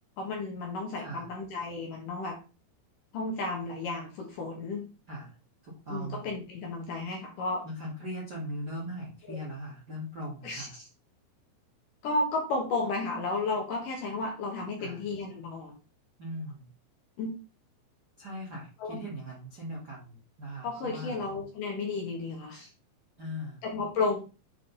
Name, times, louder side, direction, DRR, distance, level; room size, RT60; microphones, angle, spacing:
voice 1, 0.2-2.4 3.1-4.8 5.9-7.6 9.3-9.4 10.4-10.9 12.0-15.7 17.2-17.4 18.8-19.0 20.6-22.7 23.6-24.2, left 3 dB, 65° left, 0 dB, 2.2 m, -33 dB
voice 2, 1.0-1.3 5.1-5.3 5.6-6.3 7.6-10.7 14.8-15.0 16.2-16.7 18.2-21.2 23.2-23.6, equal, 85° right, -5 dB, 0.9 m, -39 dB
8.0 x 4.2 x 3.9 m, 0.32 s
omnidirectional pair, 5.4 m